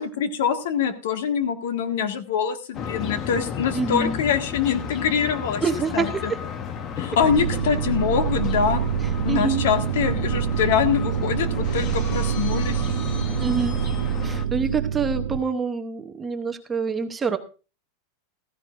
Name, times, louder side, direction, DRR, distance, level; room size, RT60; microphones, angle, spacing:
voice 1, 0.0-5.6 5.9-6.3 7.0-8.8 9.2-12.8, left 7 dB, 70° left, 7 dB, 1.7 m, -24 dB
sound 1, 2.7-14.5, left 7 dB, 25° left, 0.8 m, -33 dB
voice 2, 3.7-4.2 5.6-6.4 9.3-9.6 13.4-13.8 14.2-17.4, right 5 dB, 10° right, 7 dB, 0.8 m, -26 dB
sound 2, 7.2-15.4, right 9 dB, 75° right, 0.7 m, -26 dB
Shatter, 11.6-14.4, left 4 dB, 45° left, 6.8 m, -43 dB
15.0 x 15.0 x 2.5 m, 0.33 s
supercardioid pair, 175°, 0 cm